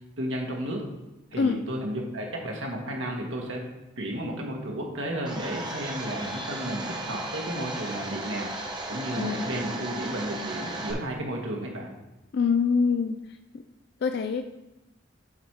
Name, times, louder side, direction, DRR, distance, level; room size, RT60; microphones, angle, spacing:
voice 1, 0.2-0.8 1.3-3.6 4.0-8.5 8.9-11.9, right 1 dB, 70° right, 0 dB, 1.6 m, -33 dB
Domestic sounds home sounds, 5.2-10.9, right 2 dB, 20° right, 0.9 m, -35 dB
voice 2, 9.2-9.8 12.3-13.2 13.5-13.6 14.0-14.4, left 5 dB, 55° left, 7 dB, 0.3 m, -25 dB
8.3 x 4.3 x 4.7 m, 0.98 s
head